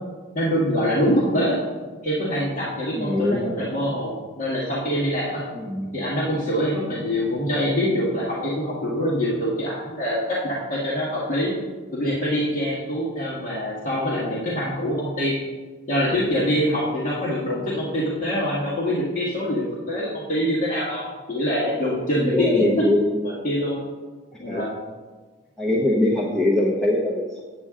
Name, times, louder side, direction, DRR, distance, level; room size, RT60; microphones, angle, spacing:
voice 1, 0.4-1.6 2.0-5.4 5.9-11.5 11.9-15.4 15.9-22.8 23.2-23.8 24.4-24.7, equal, 35° left, -8 dB, 1.6 m, -24 dB
voice 2, 3.0-3.5 5.6-6.0 22.2-23.1 24.4-24.6 25.6-27.4, left 1 dB, ahead, -5 dB, 0.8 m, -22 dB
8.6 x 8.5 x 3.7 m, 1.3 s
head